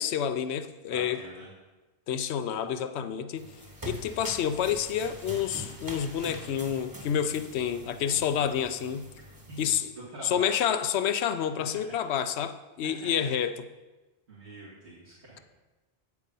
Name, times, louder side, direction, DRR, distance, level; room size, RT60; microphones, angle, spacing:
voice 1, 0.0-1.2 2.1-3.5 3.9-9.1 9.6-9.9 10.2-13.6, left 9 dB, 80° left, 12 dB, 0.9 m, -29 dB
voice 2, 0.9-1.5 10.1-10.5 11.7-11.9 12.8-13.3 14.3-15.4, right 1 dB, 80° right, -9 dB, 2.6 m, -45 dB
sound 1, 3.4-9.8, right 1 dB, 20° right, 1.1 m, -44 dB
8.7 x 8.1 x 5.4 m, 1.2 s
omnidirectional pair, 1.1 m